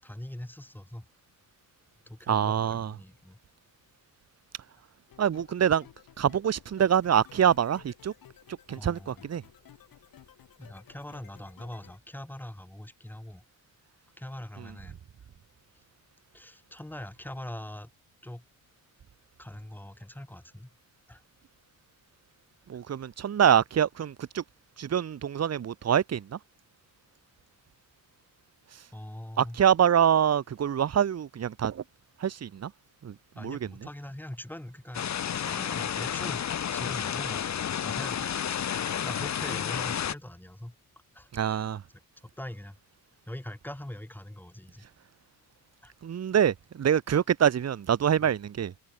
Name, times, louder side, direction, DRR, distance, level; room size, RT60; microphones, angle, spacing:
voice 1, 0.0-1.1 2.1-3.4 8.8-9.3 10.6-13.4 14.2-15.0 16.3-17.9 18.2-18.4 19.4-20.7 21.1-21.2 28.9-29.6 33.4-35.1 35.4-36.4 36.7-37.4 37.7-38.6 39.0-40.7 41.1-41.7 42.4-42.8 43.3-44.9 45.8-45.9, left 1 dB, 5° left, 5.7 m, -42 dB
voice 2, 2.3-2.9 5.2-5.8 6.2-8.1 8.7-9.4 22.7-24.4 24.8-26.4 29.4-31.8 32.2-32.7 33.0-33.1 33.4-33.7 41.3-41.8 46.0-48.7, right 9 dB, 45° right, 1.5 m, -25 dB
sound 1, 5.1-12.0, left 10 dB, 65° left, 7.9 m, -55 dB
sound 2, 34.9-40.1, left 9 dB, 45° left, 1.7 m, -31 dB
cardioid pair, 110°, 37 cm